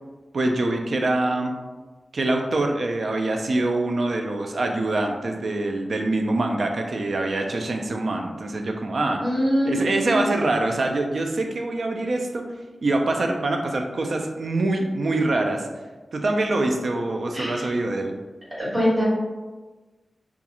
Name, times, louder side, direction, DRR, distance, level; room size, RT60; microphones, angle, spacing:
voice 1, 0.3-1.5 2.1-9.2 9.7-12.5 12.8-15.7 16.1-18.1, right 2 dB, 65° right, 3 dB, 0.3 m, -24 dB
voice 2, 9.2-10.2 17.3-17.6 18.6-19.0, equal, 35° right, -10 dB, 1.4 m, -23 dB
2.4 x 2.3 x 2.8 m, 1.3 s
wide cardioid pair, 110°, 0 cm